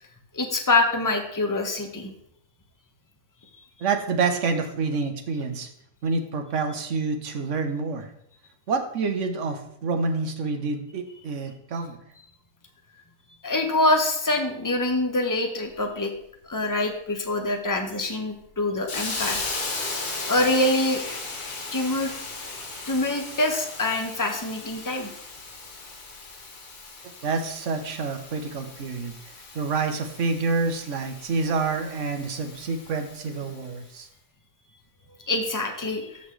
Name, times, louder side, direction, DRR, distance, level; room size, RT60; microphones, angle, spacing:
voice 1, 0.3-2.1 13.4-16.1 16.5-19.4 20.3-21.0 21.7-22.1 22.9-25.1 35.2-36.2, left 2 dB, 15° left, 4 dB, 0.9 m, -25 dB
voice 2, 3.8-5.7 6.0-8.1 8.7-12.0 27.2-29.2 29.5-34.1, right 4 dB, 55° right, 6 dB, 1.3 m, -27 dB
Hiss, 18.9-33.7, left 3 dB, 90° left, 2.3 m, -37 dB
13.5 x 5.8 x 3.3 m, 0.73 s
omnidirectional pair, 1.6 m